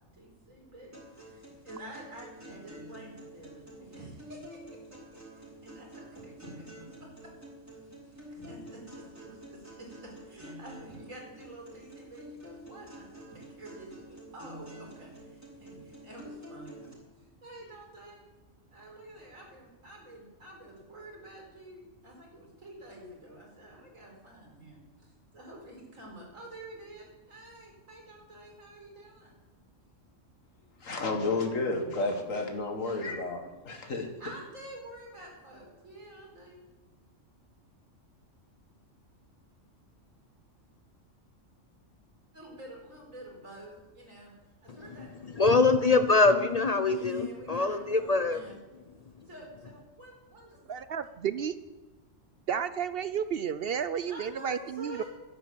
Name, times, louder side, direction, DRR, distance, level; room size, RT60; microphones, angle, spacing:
voice 1, 0.1-4.6 5.3-6.5 6.8-7.3 7.7-16.9 17.4-18.2 18.7-29.3 32.8-33.2 34.2-36.6 42.3-44.3 44.6-45.1 46.8-48.6 49.3-50.6 54.1-55.1, right 1 dB, 90° right, -1 dB, 4.8 m, -49 dB
sound 1, 0.9-16.9, equal, 10° right, 4.4 m, -48 dB
voice 2, 30.8-34.1, left 3 dB, 90° left, 3 dB, 2.0 m, -31 dB
voice 3, 44.7-48.5 48.9-49.3, left 3 dB, 45° left, 9 dB, 0.5 m, -25 dB
voice 4, 50.7-51.6 52.5-55.0, right 8 dB, 60° right, 13 dB, 0.6 m, -32 dB
12.0 x 10.5 x 7.6 m, 1.2 s
omnidirectional pair, 1.3 m